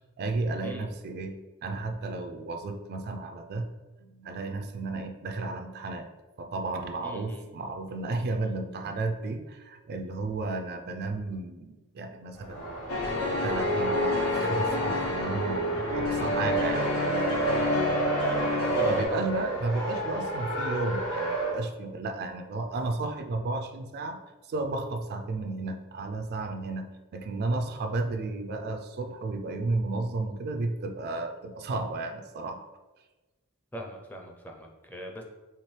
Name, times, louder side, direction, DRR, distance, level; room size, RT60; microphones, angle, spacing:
voice 1, 0.2-3.7 4.0-6.1 6.4-12.7 13.4-16.9 17.7-32.7, right 3 dB, 50° right, 5 dB, 0.4 m, -33 dB
voice 2, 7.0-7.5 18.3-18.4 18.8-19.0 33.7-35.2, equal, 10° left, 1 dB, 0.5 m, -42 dB
Race car auto racing, 12.3-21.6, right 2 dB, 70° left, 1.4 m, -30 dB
sound 1, 12.9-19.0, left 2 dB, 85° left, 0.9 m, -29 dB
4.4 x 3.4 x 3.2 m, 1.2 s
head